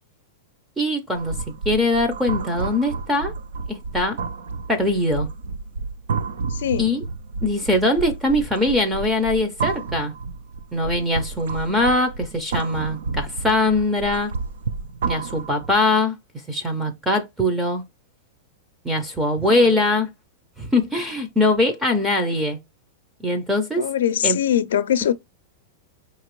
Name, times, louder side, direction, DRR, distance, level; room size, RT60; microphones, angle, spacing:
voice 1, 0.8-3.3 3.7-4.2 4.7-5.3 6.8-7.0 7.4-10.1 10.7-14.3 15.1-16.2 16.5-17.8 18.8-20.1 20.6-22.6 23.2-23.9 24.2-24.4, left 1 dB, 5° right, 0.5 m, -22 dB
sound 1, 1.1-15.9, right 4 dB, 90° right, 0.5 m, -31 dB
voice 2, 6.5-7.0 19.4-19.7 23.8-25.1, left 10 dB, 85° left, 0.4 m, -22 dB
5.1 x 2.9 x 3.0 m
supercardioid pair, 170°, 0 cm